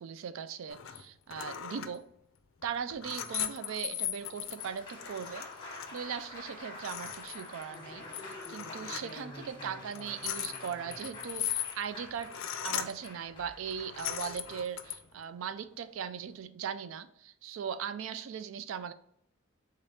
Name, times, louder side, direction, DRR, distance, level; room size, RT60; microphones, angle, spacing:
voice 1, 0.0-2.1 2.6-5.5 5.9-12.3 12.6-18.9, right 7 dB, 80° right, 0.3 m, -39 dB
sound 1, 0.7-1.0 1.3-2.0 2.6-6.0 6.3-6.4 6.7-7.8 8.1-9.1 9.8-13.1 13.7-15.0, left 11 dB, 75° left, 0.4 m, -38 dB
Applause, 4.3-16.4, left 2 dB, 25° left, 1.0 m, -48 dB
3.7 x 3.3 x 4.1 m
head